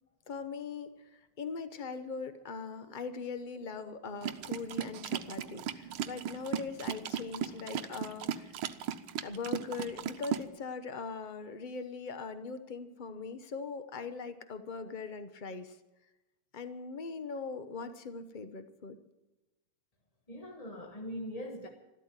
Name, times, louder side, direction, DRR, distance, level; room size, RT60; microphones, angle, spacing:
voice 1, 0.3-8.6 9.2-15.8 16.5-19.0, left 5 dB, 75° left, 10 dB, 0.4 m, -41 dB
sound 1, 4.2-10.5, right 10 dB, 75° right, 1.6 m, -36 dB
voice 2, 20.3-21.7, equal, 20° left, 2 dB, 1.1 m, -42 dB
13.0 x 13.0 x 7.5 m, 1.0 s
omnidirectional pair, 2.4 m